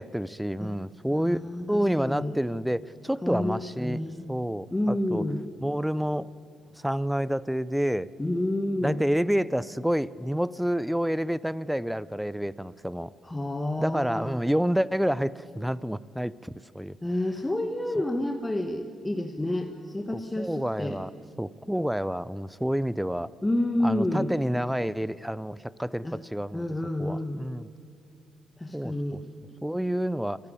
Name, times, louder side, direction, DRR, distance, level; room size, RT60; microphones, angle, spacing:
voice 1, 0.0-1.4 1.7-4.0 4.3-5.2 5.6-6.3 6.8-8.1 8.8-13.1 13.8-17.0 18.0-18.1 20.1-21.1 21.4-23.3 23.8-26.7 27.0-27.7 28.7-29.2 29.6-30.4, equal, 5° right, 19 dB, 0.5 m, -28 dB
voice 2, 1.1-2.4 3.2-4.3 4.7-5.4 8.2-9.0 13.2-14.4 17.0-21.0 23.4-24.3 26.0-26.2 26.5-27.4 28.6-29.2, left 1 dB, 15° left, 5 dB, 1.2 m, -29 dB
29.5 x 10.5 x 8.6 m, 2.5 s
cardioid pair, 90°, 0 cm